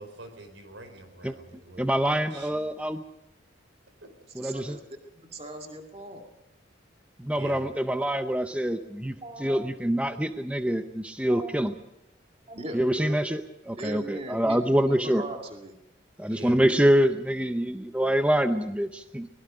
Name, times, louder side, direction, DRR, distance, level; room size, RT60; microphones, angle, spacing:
voice 1, 0.0-1.9 2.3-2.5 7.3-7.6 16.3-16.6, right 2 dB, 80° right, 7 dB, 5.2 m, -45 dB
voice 2, 1.8-3.0 4.4-4.8 7.2-9.1 9.4-11.7 12.7-13.4 13.7-15.2 16.2-19.3, equal, 5° right, 8 dB, 0.7 m, -25 dB
voice 3, 4.3-4.8 5.1-6.2 9.2-9.7 10.6-10.7 11.3-11.5 12.5-13.2 13.7-15.8, right 1 dB, 30° right, 3 dB, 2.3 m, -39 dB
24.0 x 21.5 x 5.1 m, 0.93 s
head